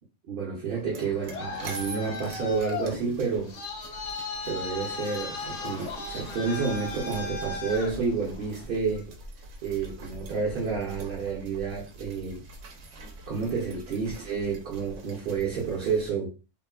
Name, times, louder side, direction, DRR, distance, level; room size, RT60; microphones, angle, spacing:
voice 1, 0.3-3.5 4.5-9.0 9.6-12.4 13.3-16.3, right 5 dB, 55° right, 0.7 m, -30 dB
sound 1, 0.7-16.1, right 2 dB, 85° right, 1.0 m, -45 dB
Traffic noise roadway noise, 0.9-8.7, left 3 dB, 80° left, 1.0 m, -36 dB
3.0 x 2.1 x 2.2 m
omnidirectional pair, 1.2 m